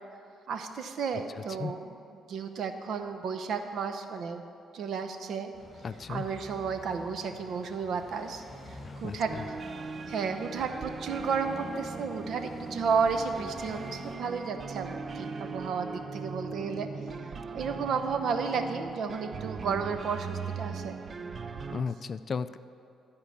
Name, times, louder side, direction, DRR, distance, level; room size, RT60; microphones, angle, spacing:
voice 1, 0.5-4.4 4.7-5.5 6.1-8.4 8.7-9.3 10.1-16.9 17.5-21.0, right 5 dB, 70° right, 7 dB, 0.8 m, -32 dB
sound 1, 5.5-14.2, left 1 dB, 20° left, 2.3 m, -49 dB
voice 2, 5.8-6.3 9.0-9.2 21.7-22.6, left 5 dB, 45° left, 14 dB, 0.3 m, -34 dB
sound 2, 9.2-21.8, right 4 dB, 45° right, 0.5 m, -39 dB
12.5 x 4.8 x 8.3 m, 2.5 s
cardioid pair, 90°, 0 cm